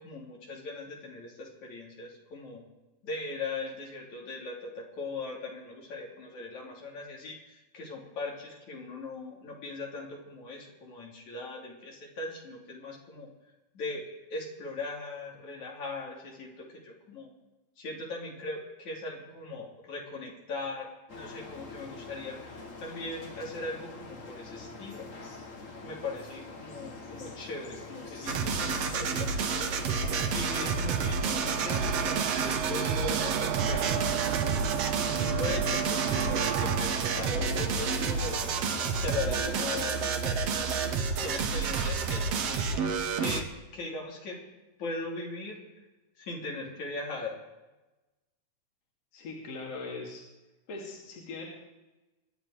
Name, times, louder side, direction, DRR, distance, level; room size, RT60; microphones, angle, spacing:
voice 1, 0.0-2.6 3.0-13.3 13.7-14.0 14.3-17.3 17.8-25.1 25.8-29.5 30.2-34.6 35.1-38.4 39.0-40.4 41.1-42.8 43.2-44.4 44.8-45.6 46.2-47.4, left 2 dB, 75° left, -2 dB, 4.4 m, -39 dB
sound 1, 21.1-40.2, left 3 dB, 35° left, 1.6 m, -45 dB
sound 2, 28.3-43.4, right 5 dB, 60° right, 2.2 m, -30 dB
sound 3, 28.6-38.9, right 12 dB, 85° right, 2.1 m, -35 dB
voice 2, 49.1-50.2 50.7-51.4, left 3 dB, 60° left, -2 dB, 3.7 m, -40 dB
25.5 x 10.5 x 4.8 m, 1.1 s
omnidirectional pair, 3.4 m